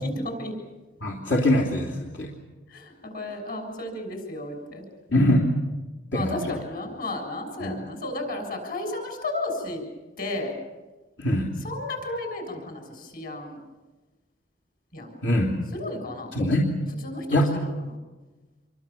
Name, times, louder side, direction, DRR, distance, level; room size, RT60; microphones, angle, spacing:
voice 1, 0.0-0.6 2.7-4.9 6.1-9.8 10.2-10.5 11.6-13.6 14.9-15.1 15.7-16.3 17.0-17.7, left 2 dB, 50° left, 4 dB, 7.0 m, -33 dB
voice 2, 1.0-2.3 5.1-5.6 6.1-6.3 7.6-7.7 11.2-11.5 15.2-15.5 16.3-16.7 17.3-17.5, left 1 dB, 75° left, -1 dB, 3.1 m, -22 dB
27.5 x 23.5 x 7.2 m, 1.2 s
head